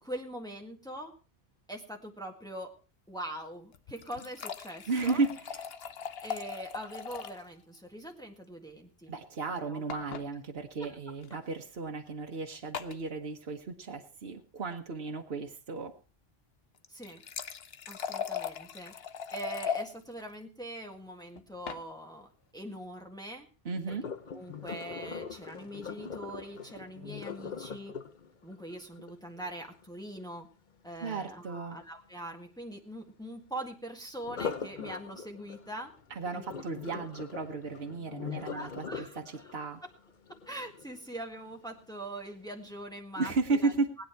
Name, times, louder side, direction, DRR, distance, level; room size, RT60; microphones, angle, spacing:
voice 1, 0.0-1.1 1.7-2.7 3.1-5.2 6.2-9.1 9.6-9.8 10.8-11.1 16.9-17.2 17.9-18.9 19.3-23.5 24.3-27.9 28.4-30.5 30.8-35.9 36.3-36.4 36.9-37.2 38.3-39.5 39.8-39.9 40.5-43.7, right 1 dB, 5° left, 1 dB, 1.8 m, -42 dB
sound 1, 3.7-7.5 7.7-7.8 8.1-8.2 9.9-10.3 11.2-11.4 12.7-13.0 16.8-19.9 21.4-21.8, left 7 dB, 75° left, 1.1 m, -39 dB
voice 2, 4.9-5.4 9.1-15.9 23.6-24.1 31.0-31.8 36.1-38.8 39.5-39.8 43.2-43.9, right 4 dB, 75° right, 3 dB, 1.5 m, -34 dB
Sink (filling or washing), 23.9-29.8 34.2-41.3 41.8-42.1 42.6-42.7, left 6 dB, 50° left, 0.9 m, -42 dB
19.5 x 9.5 x 4.6 m, 0.35 s
omnidirectional pair, 1.0 m